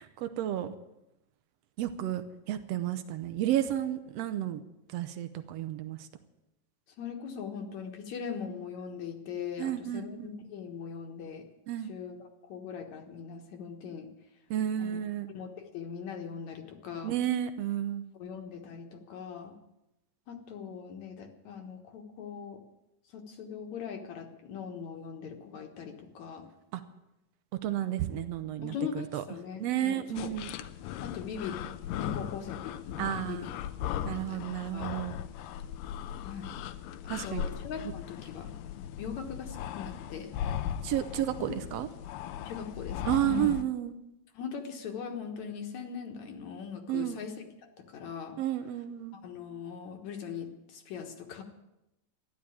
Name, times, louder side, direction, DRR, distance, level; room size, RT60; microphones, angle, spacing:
voice 1, 0.2-0.7 1.8-4.6 4.9-6.1 9.6-10.3 11.7-11.9 14.5-15.3 17.0-18.0 26.7-26.8 27.6-29.2 29.6-30.5 33.0-33.5 34.0-35.2 37.1-37.4 40.8-41.9 43.1-43.9 46.9-47.2 48.4-49.2, right 12 dB, 85° right, 10 dB, 1.4 m, -32 dB
voice 2, 7.0-11.4 11.9-12.2 12.5-14.1 14.8-15.0 15.3-17.2 18.1-19.6 20.3-22.6 23.1-26.5 28.6-30.3 31.0-31.6 31.9-33.0 33.3-33.5 33.9-34.5 34.7-35.0 36.2-36.6 37.0-38.5 39.0-40.3 42.5-43.6 44.3-47.3 47.8-48.4 49.2-51.4, left 7 dB, 65° left, 4 dB, 2.5 m, -40 dB
sound 1, 30.2-43.6, left 10 dB, 80° left, 2.3 m, -38 dB
13.5 x 11.0 x 8.6 m, 0.90 s
omnidirectional pair, 3.9 m